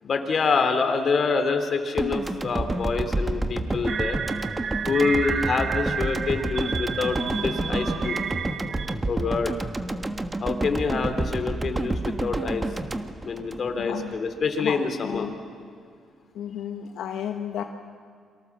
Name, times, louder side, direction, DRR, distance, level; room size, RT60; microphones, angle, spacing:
voice 1, 0.0-4.2 4.9-8.2 9.0-9.5 10.4-12.7 13.2-15.3, left 4 dB, 50° left, 6 dB, 3.3 m, -26 dB
sound 1, 2.0-14.2, right 2 dB, 20° right, 1.4 m, -29 dB
sound 2, 3.9-8.9, right 6 dB, 55° right, 1.0 m, -31 dB
sound 3, 7.2-11.0, right 1 dB, 80° right, 6.9 m, -45 dB
voice 2, 13.8-14.1 14.6-15.3 16.3-17.6, left 9 dB, 80° left, 4 dB, 1.2 m, -33 dB
28.0 x 24.0 x 7.4 m, 2.1 s
cardioid pair, 90°, 0 cm